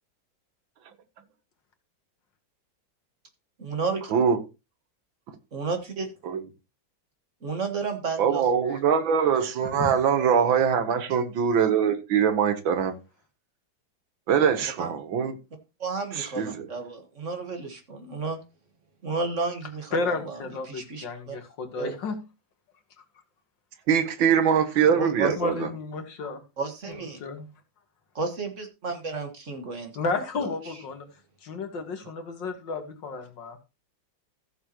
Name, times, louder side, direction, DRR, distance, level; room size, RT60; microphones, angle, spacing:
voice 1, 3.6-4.1 5.5-6.1 7.4-8.4 14.8-14.9 15.8-18.4 19.0-20.4 20.7-21.4 21.8-22.0 24.9-25.3 26.6-27.2 28.1-30.1 30.4-30.5, right 4 dB, 40° right, 1.7 m, -32 dB
voice 2, 8.2-12.9 14.3-15.3 16.2-16.5 23.9-25.7, right 7 dB, 85° right, 1.8 m, -23 dB
voice 3, 9.6-10.0 19.9-22.2 25.4-26.4 27.2-27.5 30.0-31.1 31.4-33.6, left 3 dB, 70° left, 2.2 m, -32 dB
15.0 x 6.8 x 3.0 m
omnidirectional pair, 2.1 m